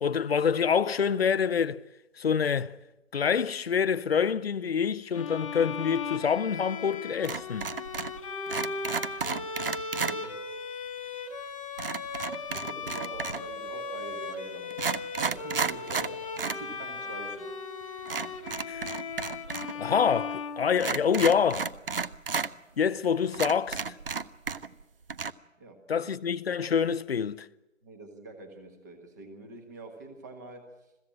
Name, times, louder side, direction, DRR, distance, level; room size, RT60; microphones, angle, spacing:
voice 1, 0.0-1.8 2.2-2.7 3.1-7.7 18.7-18.8 19.7-21.7 22.8-23.8 25.9-27.5, left 7 dB, 50° left, 0.7 m, -26 dB
Bowed string instrument, 5.1-21.2, left 4 dB, 25° left, 1.2 m, -37 dB
sound 1, 7.2-8.2 8.5-10.2 11.8-13.5 14.2-14.3 14.7-16.6 16.9-17.0 18.0-19.7 20.0-20.1 20.8-22.5 23.0-23.1 23.3-24.8 25.1-25.3, right 5 dB, 45° right, 0.7 m, -33 dB
voice 2, 9.9-10.4 11.0-11.2 12.1-14.7 15.1-17.5 25.6-26.1 27.8-30.7, right 2 dB, 15° right, 1.4 m, -45 dB
21.5 x 15.5 x 8.8 m
hypercardioid pair, 175°, 38 cm